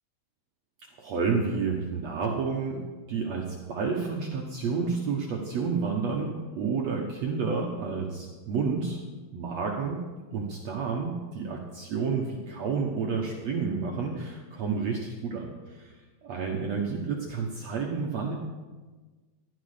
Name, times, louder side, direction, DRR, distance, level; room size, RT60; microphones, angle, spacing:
voice 1, 1.0-9.0 9.3-10.0 10.3-15.9 16.2-18.4, right 5 dB, 60° right, 0 dB, 1.9 m, -30 dB
16.0 x 12.0 x 5.0 m, 1.3 s
omnidirectional pair, 4.4 m